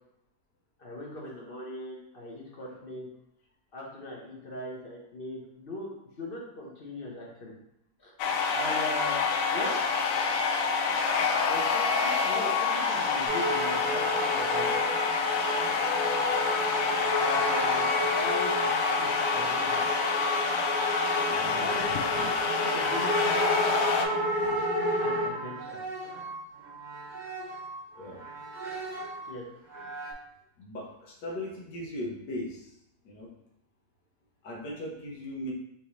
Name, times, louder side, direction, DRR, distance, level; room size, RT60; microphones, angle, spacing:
voice 1, 0.8-3.1 3.7-7.5 8.0-8.1 8.5-9.2 9.5-9.8 11.5-14.8 17.2-18.7 19.0-19.9 21.4-23.6 25.0-25.8 29.3-29.4, left 1 dB, 40° left, -2 dB, 0.9 m, -39 dB
sound 1, 8.2-24.1, left 5 dB, 70° left, 0.8 m, -27 dB
sound 2, 13.3-27.8 28.2-29.3 29.7-30.1, right 1 dB, 35° right, 1.0 m, -32 dB
voice 2, 21.3-21.8 24.4-24.6 27.9-28.2 30.6-32.6 33.0-33.3 34.4-35.5, left 1 dB, 85° left, -1 dB, 1.6 m, -38 dB
6.1 x 2.6 x 3.1 m, 0.81 s
omnidirectional pair, 1.8 m